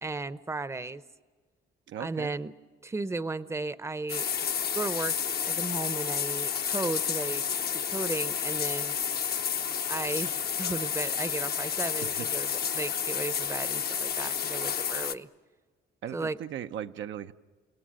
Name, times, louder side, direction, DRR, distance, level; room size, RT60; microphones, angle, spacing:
voice 1, 0.0-1.0 2.0-2.5 2.8-4.3 4.7-5.1 5.5-7.5 7.7-8.9 9.9-12.5 12.7-15.3 16.1-16.4, right 3 dB, 15° right, 14 dB, 0.7 m, -35 dB
voice 2, 1.9-2.3 12.0-12.3 16.0-17.3, right 10 dB, 70° right, 8 dB, 0.7 m, -38 dB
sound 1, 4.1-15.2, left 7 dB, 50° left, 0.9 m, -30 dB
29.5 x 18.5 x 8.8 m, 1.5 s
cardioid pair, 90°, 20 cm